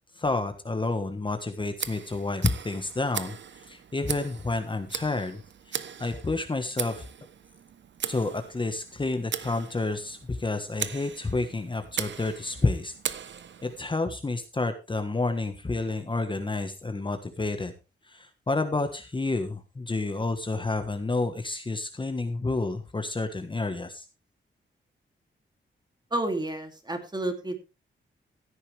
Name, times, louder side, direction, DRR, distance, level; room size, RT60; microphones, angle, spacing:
voice 1, 0.1-5.4 5.7-7.1 8.1-12.9 13.6-17.7 18.0-24.0, left 3 dB, 25° left, 7 dB, 1.3 m, -30 dB
Tick, 1.7-13.8, right 8 dB, 65° right, 0.9 m, -38 dB
voice 2, 26.1-27.6, right 1 dB, 20° right, 5 dB, 2.7 m, -30 dB
16.0 x 9.7 x 3.4 m, 0.30 s
cardioid pair, 100°, 20 cm